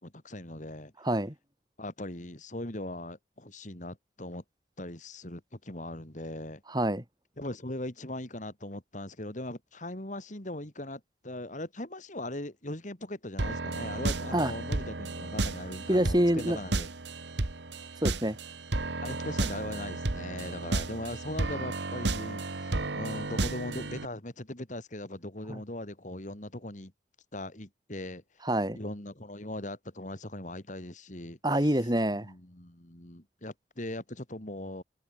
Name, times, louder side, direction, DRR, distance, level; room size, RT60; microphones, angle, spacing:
voice 1, 0.0-0.9 1.8-4.4 4.8-6.6 7.4-16.9 19.0-26.9 27.3-28.2 28.7-31.8 32.1-34.8, left 1 dB, 45° left, 2.9 m, -40 dB
voice 2, 1.0-1.3 6.7-7.0 14.3-14.5 15.9-16.6 18.0-18.4 25.5-25.6 28.4-28.8 31.4-32.3, right 1 dB, 25° right, 3.0 m, -26 dB
sound 1, 13.4-24.1, right 2 dB, 75° right, 1.4 m, -33 dB
head